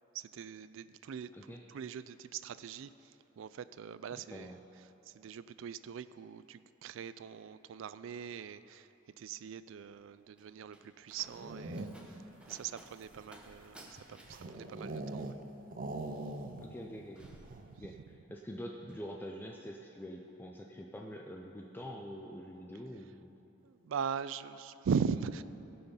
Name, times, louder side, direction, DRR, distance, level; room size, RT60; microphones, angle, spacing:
voice 1, 0.1-4.6 5.0-15.4 17.2-17.4 17.8-18.0 23.6-25.4, right 6 dB, 70° right, 15 dB, 0.3 m, -40 dB
Slam, 10.0-18.3 18.6-19.1, right 1 dB, 5° right, 0.9 m, -59 dB
sound 1, 11.2-12.2 12.9-15.4 15.7-16.8 17.1-17.2 17.4-17.8, right 2 dB, 45° right, 0.6 m, -42 dB
voice 2, 16.6-17.3 17.8-18.0 18.3-23.3, equal, 10° left, 1 dB, 0.4 m, -45 dB
16.0 x 5.7 x 5.6 m, 3.0 s
head